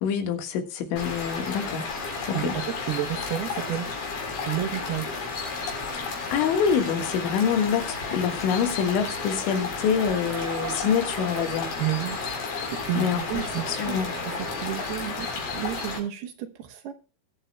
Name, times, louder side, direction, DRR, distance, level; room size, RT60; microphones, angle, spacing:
voice 1, 0.0-1.9 2.3-2.5 5.9-11.7 12.9-14.2, left 7 dB, 85° left, 4.0 m, -26 dB
sound 1, 1.0-16.0, left 4 dB, 65° left, 5.7 m, -32 dB
voice 2, 2.9-4.1 4.5-5.1 11.8-12.2 12.9-16.9, right 13 dB, 75° right, 2.6 m, -31 dB
sound 2, 10.0-12.9 13.2-14.6, right 13 dB, 90° right, 2.2 m, -41 dB
21.5 x 9.0 x 2.2 m
omnidirectional pair, 5.3 m